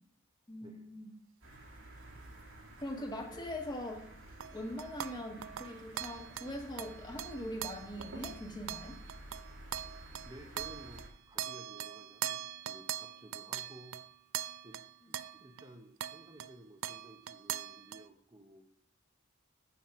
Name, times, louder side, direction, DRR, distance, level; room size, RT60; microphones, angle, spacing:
voice 1, 0.5-1.1 2.8-4.0 4.5-9.0, left 1 dB, 20° left, 2 dB, 1.6 m, -42 dB
sound 1, 1.4-11.1, right 1 dB, 85° right, 2.3 m, -51 dB
sound 2, 4.4-11.1 11.4-15.7 16.0-16.5 16.8-18.1, right 11 dB, 65° right, 0.4 m, -42 dB
voice 2, 10.2-14.0 14.6-14.8 15.1-18.6, right 1 dB, 20° right, 3 dB, 0.7 m, -54 dB
7.4 x 7.4 x 6.0 m, 0.65 s
head